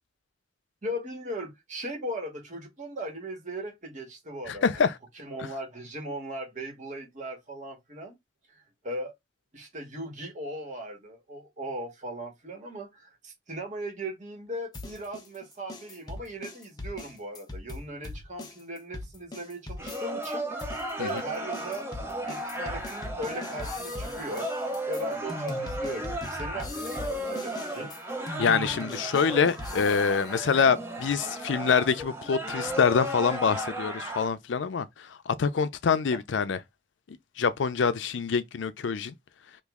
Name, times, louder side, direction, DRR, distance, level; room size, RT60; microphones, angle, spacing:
voice 1, 0.8-4.9 5.2-8.2 8.5-9.1 9.5-20.5 21.0-21.9 22.2-24.5 24.9-27.9 36.1-36.2, right 1 dB, 40° right, 1.3 m, -38 dB
voice 2, 4.5-5.0 21.0-21.1 28.4-36.6 37.1-39.1, left 6 dB, 80° left, 0.5 m, -25 dB
sound 1, 14.7-20.3 20.6-30.3, left 1 dB, 20° left, 0.7 m, -40 dB
sound 2, 19.8-34.3, right 1 dB, 15° right, 0.7 m, -35 dB
3.0 x 2.5 x 3.5 m
head